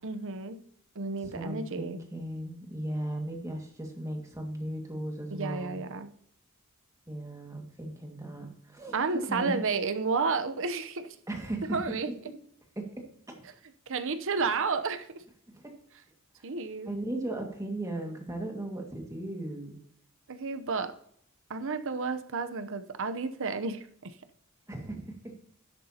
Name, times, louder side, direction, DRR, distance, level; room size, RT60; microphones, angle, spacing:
voice 1, 0.0-0.6 1.0-2.0 5.3-6.1 8.9-11.1 11.7-12.1 13.9-15.2 16.4-16.9 20.3-20.9 21.5-24.2, right 4 dB, 65° right, 10 dB, 0.9 m, -31 dB
voice 2, 1.2-5.8 7.1-9.0 9.3-9.6 11.3-11.8 12.8-13.4 14.4-14.5 15.5-15.7 16.8-19.8 24.7-25.3, right 1 dB, 15° right, 2 dB, 2.0 m, -37 dB
12.0 x 10.5 x 2.9 m, 0.68 s
head